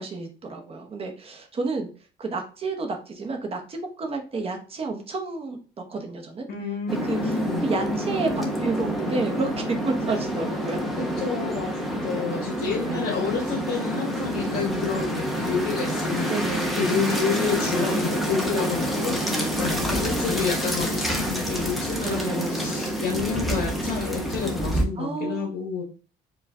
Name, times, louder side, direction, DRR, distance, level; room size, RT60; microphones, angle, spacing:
voice 1, 0.0-1.9 2.2-5.6 5.9-6.4 7.1-7.2 7.6-10.8 12.1-12.3 12.9-13.1 16.3-16.8 20.1-20.5 22.0-22.8 25.0-25.5, right 3 dB, 35° right, 3 dB, 0.9 m, -30 dB
voice 2, 6.5-7.6 10.9-11.7 12.0-16.3 16.7-25.8, left 5 dB, 65° left, -4 dB, 1.3 m, -29 dB
sound 1, 6.9-24.8, equal, ahead, 0.8 m, -27 dB
4.7 x 2.4 x 3.4 m, 0.37 s
cardioid pair, 110°, 17 cm